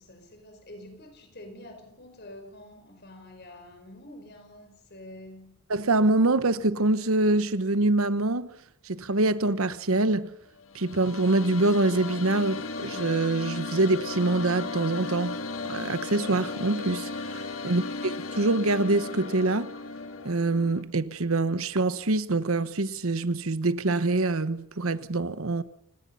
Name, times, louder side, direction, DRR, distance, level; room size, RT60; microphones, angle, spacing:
voice 1, 0.0-5.6, left 1 dB, 50° left, 5.1 m, -47 dB
voice 2, 5.7-8.5 8.9-10.3 10.7-15.4 15.7-19.7 20.2-25.6, right 2 dB, 70° right, 1.1 m, -25 dB
sound 1, 10.6-20.8, left 3 dB, 65° left, 1.7 m, -36 dB
30.0 x 18.0 x 5.6 m
head